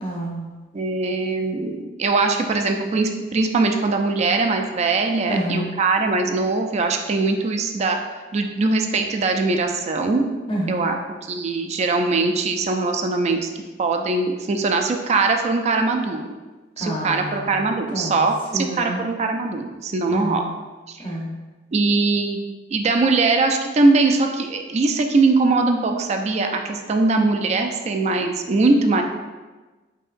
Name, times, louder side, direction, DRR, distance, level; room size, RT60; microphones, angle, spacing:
voice 1, 0.0-0.6 5.3-5.8 10.5-11.0 16.8-17.6 17.9-18.2 18.5-19.0 20.1-20.5 21.0-21.3, right 1 dB, 30° left, -4 dB, 0.7 m, -28 dB
voice 2, 0.7-8.0 8.3-10.2 10.7-11.0 11.3-13.5 13.8-16.3 16.8-20.4 20.9-21.0 21.7-22.4 22.7-29.0, right 3 dB, 40° right, 4 dB, 0.3 m, -21 dB
4.7 x 2.8 x 2.5 m, 1.3 s
head